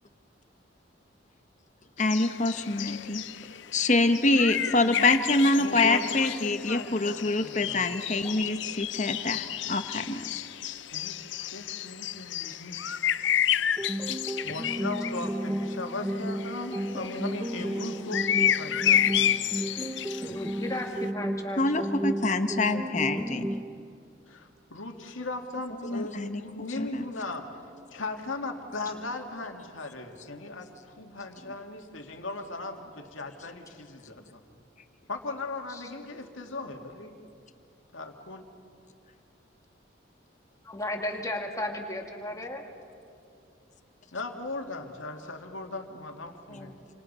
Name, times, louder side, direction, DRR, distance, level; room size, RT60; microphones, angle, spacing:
sound 1, 2.0-15.3 16.0-20.7, left 10 dB, 65° left, 0.6 m, -30 dB
voice 1, 2.0-3.2 3.7-10.4 21.6-23.5 25.9-26.4 26.8-27.0 31.5-31.6, left 2 dB, 35° left, 8 dB, 1.1 m, -26 dB
voice 2, 4.5-5.2 5.6-7.9 10.9-12.8 14.4-19.4 24.3-27.5 27.9-34.4 35.1-37.2 37.9-38.5 44.1-46.7, left 2 dB, 85° left, 4 dB, 2.3 m, -38 dB
sound 2, 13.8-23.8, equal, 10° right, 0.5 m, -33 dB
voice 3, 20.3-22.0 35.7-35.8 40.6-42.6 46.5-46.8, left 1 dB, 15° left, 2 dB, 2.2 m, -35 dB
29.0 x 26.0 x 5.6 m, 2.5 s
head